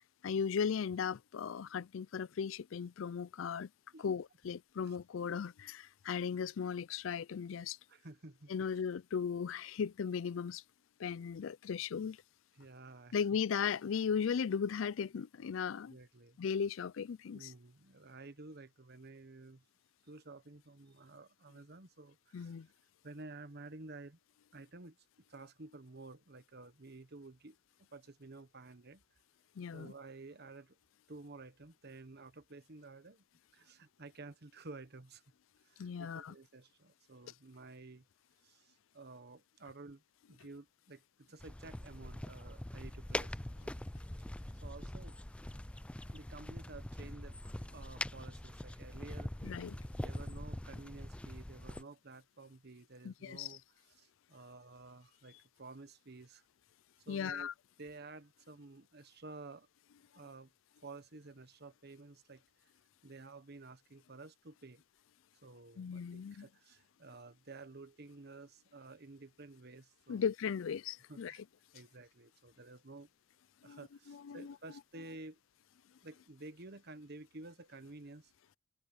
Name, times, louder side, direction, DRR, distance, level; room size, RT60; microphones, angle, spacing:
voice 1, 0.2-3.7 4.0-7.8 8.5-10.6 11.0-12.2 13.1-16.0 16.4-17.5 22.3-22.7 29.6-29.9 35.8-36.3 49.4-49.8 53.0-53.6 57.1-57.5 65.8-66.5 70.1-71.4 73.6-73.8 74.1-74.5, left 6 dB, 70° left, 0.4 m, -37 dB
voice 2, 7.9-8.7 12.6-13.2 15.9-16.4 17.3-19.6 20.1-22.6 23.0-24.2 24.5-25.0 25.3-29.0 29.7-30.8 31.1-33.2 33.5-35.2 35.6-38.0 38.4-40.0 40.3-43.8 44.6-45.2 46.1-47.4 47.7-49.5 50.0-53.6 53.9-56.4 57.1-57.5 57.8-59.7 60.1-60.5 60.8-62.7 63.0-64.8 65.4-70.2 71.1-71.4 71.7-73.1 73.6-75.4 76.0-78.3, right 3 dB, 55° right, 1.2 m, -52 dB
sound 1, 41.4-51.8, left 1 dB, 5° left, 0.4 m, -43 dB
head